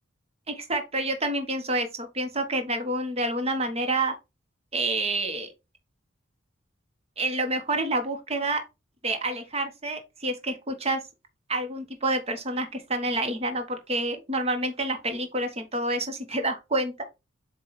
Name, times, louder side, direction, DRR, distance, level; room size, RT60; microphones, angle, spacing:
voice 1, 0.5-4.1 4.7-5.5 7.2-8.6 9.0-11.0 11.5-17.0, right 2 dB, 30° right, 1.3 m, -28 dB
8.0 x 2.7 x 4.3 m
head